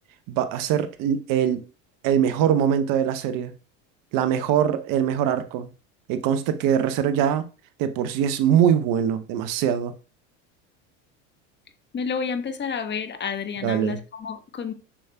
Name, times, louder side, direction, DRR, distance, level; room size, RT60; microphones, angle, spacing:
voice 1, 0.3-1.7 2.0-3.5 4.1-5.7 6.1-7.5 7.8-9.9 13.6-14.0, right 9 dB, 55° right, 0.9 m, -22 dB
voice 2, 11.9-14.7, left 6 dB, 30° left, 1.0 m, -30 dB
7.2 x 7.0 x 2.2 m
hypercardioid pair, 95°, 39 cm